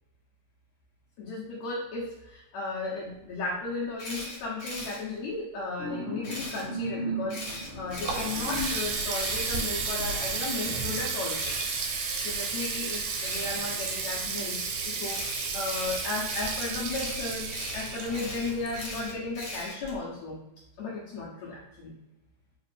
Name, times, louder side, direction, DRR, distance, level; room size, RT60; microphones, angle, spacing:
voice 1, 1.2-11.6 12.2-17.5 17.7-20.4 20.8-21.9, left 3 dB, 75° left, -6 dB, 1.8 m, -35 dB
Camera, 4.0-5.0 6.2-6.6 7.3-10.1 11.3-11.7 13.2-13.6 15.0-20.0, left 1 dB, 55° left, 1.5 m, -39 dB
sound 1, 5.8-10.6, right 1 dB, 50° right, 2.2 m, -37 dB
Water tap faucet, 7.7-19.3, right 4 dB, 85° right, 2.2 m, -32 dB
4.9 x 2.4 x 3.2 m, 0.95 s
omnidirectional pair, 3.6 m